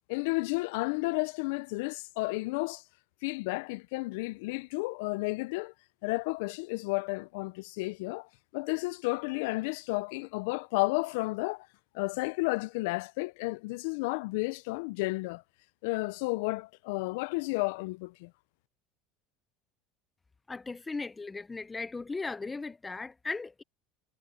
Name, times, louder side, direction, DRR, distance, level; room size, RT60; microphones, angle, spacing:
voice 1, 0.1-2.8 3.2-5.7 6.0-11.7 11.9-15.4 15.8-18.3, left 25 dB, 80° left, 0.3 m, -32 dB
voice 2, 20.5-23.6, left 3 dB, 15° left, 0.6 m, -37 dB
supercardioid pair, 125°, 0 cm